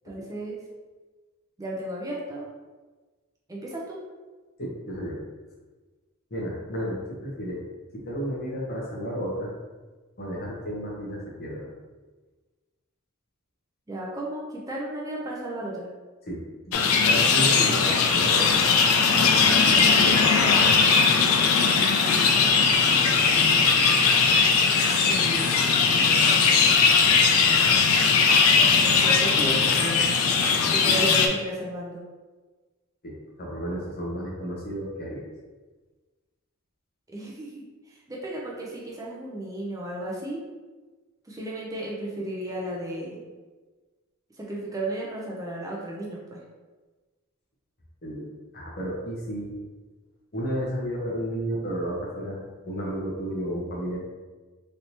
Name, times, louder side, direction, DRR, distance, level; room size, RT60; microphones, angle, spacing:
voice 1, 0.0-0.6 1.6-2.5 3.5-4.0 13.9-15.9 21.5-22.5 25.1-25.8 28.6-30.0 30.7-32.0 37.1-40.4 41.2-43.2 44.4-46.4, right 1 dB, 15° right, -4 dB, 0.5 m, -34 dB
voice 2, 4.6-5.2 6.3-7.6 7.9-9.5 10.2-11.7 16.3-16.4 16.7-18.6 19.1-20.6 30.9-31.0 33.0-35.3 48.0-49.5 50.3-52.4 52.6-54.0, equal, 45° left, -4 dB, 0.9 m, -32 dB
sound 1, 16.7-31.3, left 5 dB, 80° left, 0.4 m, -19 dB
3.3 x 2.8 x 2.8 m, 1.3 s
head